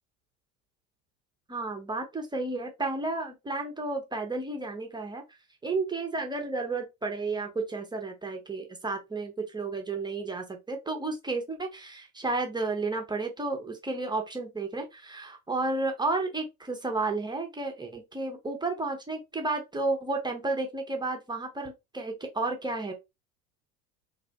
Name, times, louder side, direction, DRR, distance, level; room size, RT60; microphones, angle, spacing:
voice 1, 1.5-5.2 5.6-22.9, right 3 dB, 10° right, 0.6 m, -32 dB
2.4 x 2.0 x 2.7 m
figure-of-eight pair, 70°, 45 cm